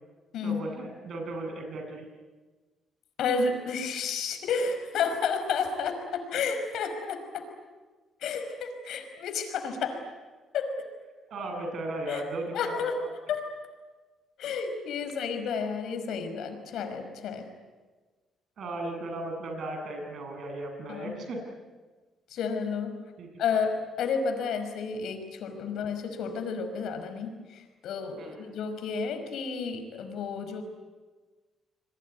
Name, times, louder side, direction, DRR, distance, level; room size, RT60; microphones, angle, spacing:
voice 1, 0.4-2.1 11.3-13.1 18.6-21.4 23.2-23.4 28.2-28.4, right 2 dB, 60° right, 3 dB, 7.8 m, -36 dB
voice 2, 3.2-7.4 8.2-10.0 10.5-10.7 12.1-12.2 12.5-12.9 13.3-13.4 14.4-17.5 20.9-21.2 22.3-22.9 23.4-30.6, left 5 dB, 75° left, 7 dB, 5.3 m, -31 dB
27.5 x 22.5 x 9.7 m, 1.3 s
cardioid pair, 90°, 0 cm